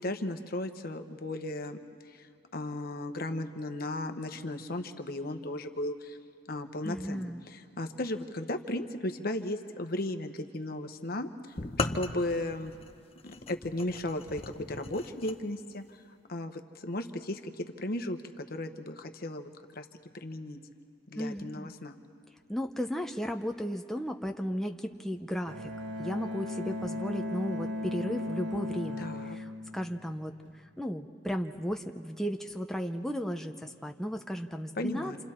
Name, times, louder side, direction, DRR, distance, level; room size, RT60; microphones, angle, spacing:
voice 1, 0.0-1.8 2.0-6.2 6.5-11.3 11.8-12.7 13.2-14.4 14.7-19.9 20.1-20.6 21.1-21.9 29.0-29.4 34.8-35.2, left 1 dB, 55° left, 7 dB, 1.1 m, -35 dB
voice 2, 6.8-7.4 21.2-21.7 22.5-25.7 26.0-35.1, equal, ahead, 4 dB, 0.6 m, -35 dB
sound 1, 11.6-15.4, left 3 dB, 35° left, 0.9 m, -37 dB
Bowed string instrument, 25.5-30.5, left 1 dB, 90° right, 1.5 m, -37 dB
28.5 x 27.5 x 4.4 m, 2.2 s
head